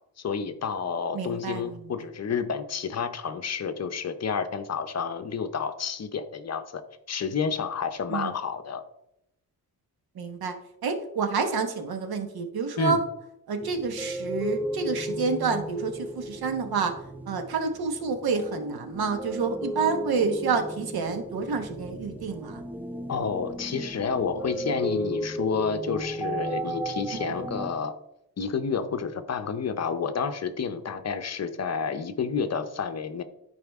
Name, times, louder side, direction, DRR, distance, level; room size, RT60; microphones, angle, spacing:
voice 1, 0.2-6.8 7.1-8.8 12.8-13.0 23.1-27.9 28.4-33.2, left 6 dB, 45° left, 9 dB, 0.7 m, -30 dB
voice 2, 1.1-1.9 8.1-8.3 10.1-10.6 10.8-13.0 13.5-16.9 17.3-22.6, right 5 dB, 85° right, 6 dB, 1.3 m, -28 dB
sound 1, 13.6-27.7, right 1 dB, 5° right, 0.4 m, -35 dB
13.0 x 4.9 x 3.5 m, 0.82 s
wide cardioid pair, 160°, 36 cm